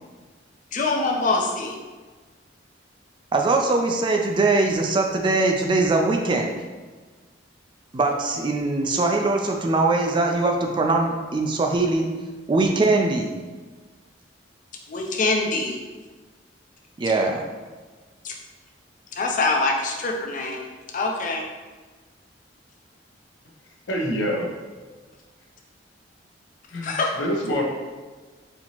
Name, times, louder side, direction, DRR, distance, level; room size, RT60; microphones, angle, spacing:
voice 1, 0.7-1.8 14.9-15.8 18.2-18.3 19.2-20.6 20.9-21.4 26.8-27.1, left 3 dB, 45° left, 1 dB, 0.5 m, -24 dB
voice 2, 3.3-6.5 7.9-12.1 12.5-13.3 17.0-17.4, right 3 dB, 25° right, 2 dB, 0.3 m, -21 dB
voice 3, 23.9-24.5 26.7-27.6, equal, 80° left, -1 dB, 0.8 m, -26 dB
4.2 x 2.8 x 2.9 m, 1.4 s
head